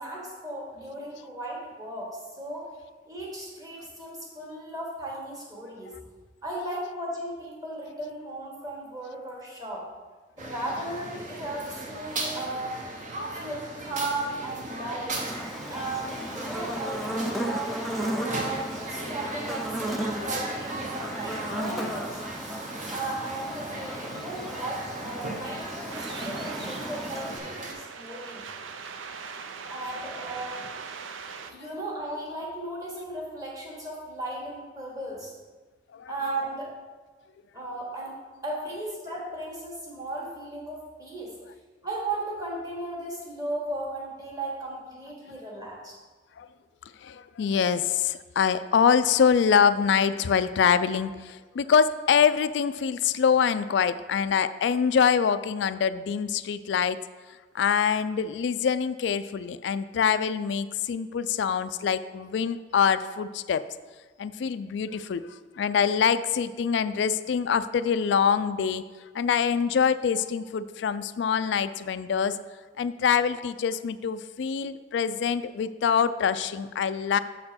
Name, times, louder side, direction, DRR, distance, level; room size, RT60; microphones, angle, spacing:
voice 1, 0.0-2.7 3.1-5.9 6.4-9.9 10.4-12.8 13.4-15.3 15.7-17.8 18.3-22.2 22.9-28.5 29.7-30.6 31.4-35.3 36.1-36.7 37.5-38.2 38.4-41.4 41.8-46.0, right 1 dB, 20° right, -3 dB, 1.5 m, -36 dB
sound 1, 10.4-27.7, right 2 dB, 40° right, 0.8 m, -37 dB
Buzz, 15.1-27.4, right 1 dB, ahead, 0.5 m, -35 dB
sound 2, 25.9-31.5, right 5 dB, 80° right, 0.5 m, -40 dB
voice 2, 47.0-57.0 57.5-63.6 64.2-65.3 65.6-68.8 69.1-72.4 72.8-77.2, left 7 dB, 65° left, 14 dB, 0.3 m, -25 dB
6.7 x 4.4 x 5.7 m, 1.4 s
head